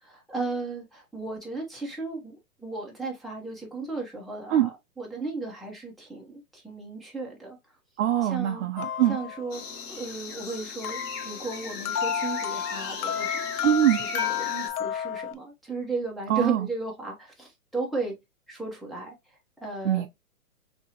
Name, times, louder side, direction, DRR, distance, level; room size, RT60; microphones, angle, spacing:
voice 1, 0.0-7.6 8.3-8.7 9.1-9.6 9.9-13.7 14.0-18.1 18.5-20.0, right 3 dB, ahead, 0.7 m, -35 dB
voice 2, 8.0-9.2 13.6-14.0 16.3-16.7 19.8-20.1, right 12 dB, 55° right, 0.5 m, -23 dB
sound 1, 8.8-9.7 10.8-15.3, left 8 dB, 75° left, 0.6 m, -31 dB
sound 2, 9.5-14.7, left 4 dB, 35° left, 1.2 m, -37 dB
3.6 x 2.9 x 2.8 m
hypercardioid pair, 130°, 45 cm